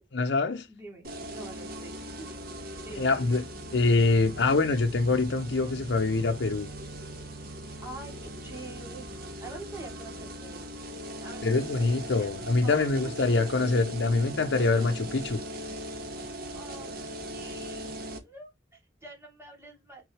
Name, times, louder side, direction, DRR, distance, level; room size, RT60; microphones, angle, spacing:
voice 1, 0.1-0.7 3.0-3.4 3.7-6.7 11.4-15.4, left 3 dB, 75° left, 0.7 m, -25 dB
voice 2, 0.7-2.3 2.8-3.4 7.8-9.1 9.4-10.7 11.2-12.3 12.6-13.1 16.5-17.9 18.2-20.1, right 2 dB, 15° right, 3.1 m, -46 dB
sound 1, 1.0-18.2, right 1 dB, 55° right, 1.7 m, -40 dB
6.0 x 5.4 x 3.3 m
head